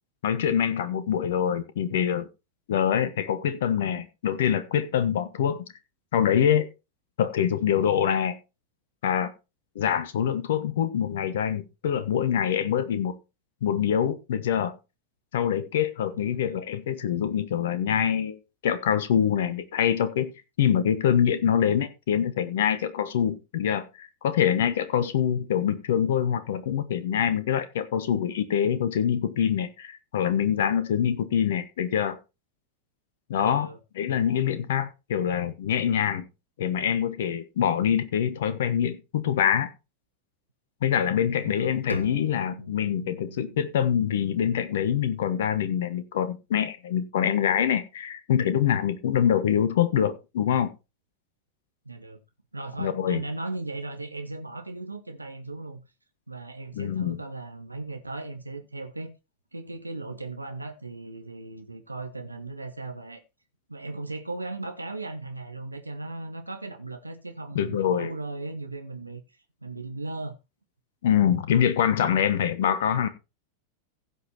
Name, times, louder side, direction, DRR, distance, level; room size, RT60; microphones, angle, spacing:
voice 1, 0.2-2.3 2.7-5.6 6.1-6.7 7.2-8.3 9.0-9.3 9.7-13.1 13.6-14.8 15.3-32.2 33.3-33.7 33.9-36.2 36.6-39.7 40.8-50.7 52.8-53.2 56.7-57.2 67.5-68.1 71.0-73.1, left 9 dB, 60° left, 1.1 m, -25 dB
voice 2, 16.1-16.6 33.3-33.8 34.1-34.3 41.4-41.8 51.8-52.2 52.5-55.8 56.3-59.1 59.5-63.2 63.7-70.4, right 2 dB, 85° right, 1.1 m, -37 dB
Bowed string instrument, 41.9-45.4, left 1 dB, 80° left, 1.0 m, -40 dB
15.5 x 5.6 x 4.3 m
figure-of-eight pair, 90°, 0 cm